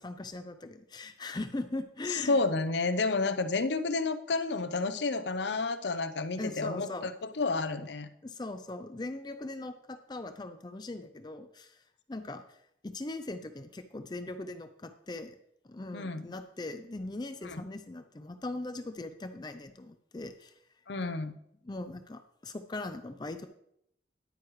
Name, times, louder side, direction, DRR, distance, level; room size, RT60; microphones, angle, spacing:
voice 1, 0.0-2.4 6.4-7.1 8.2-11.8 12.1-12.6 12.8-15.4 15.6-20.5 21.6-23.5, left 2 dB, 25° left, 9 dB, 0.5 m, -40 dB
voice 2, 2.1-8.1 15.9-16.2 17.4-17.6 20.9-21.3, left 3 dB, 75° left, 10 dB, 0.7 m, -30 dB
10.5 x 9.4 x 3.1 m, 0.75 s
head